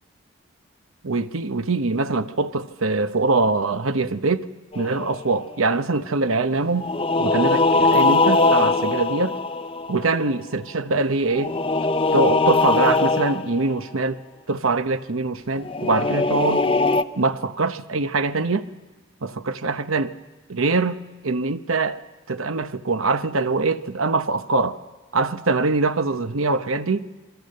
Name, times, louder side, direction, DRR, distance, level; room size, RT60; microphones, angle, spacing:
voice 1, 1.0-4.5 4.7-6.9 7.2-9.4 9.9-11.5 12.1-14.2 14.5-16.7 17.2-18.7 19.2-20.1 20.5-22.0 22.3-24.8 25.1-27.1, right 3 dB, 75° right, 0.9 m, -23 dB
sound 1, 4.7-5.6 6.8-10.3 11.3-13.8 15.6-17.0, left 3 dB, 25° left, 0.7 m, -21 dB
28.5 x 23.0 x 6.6 m
head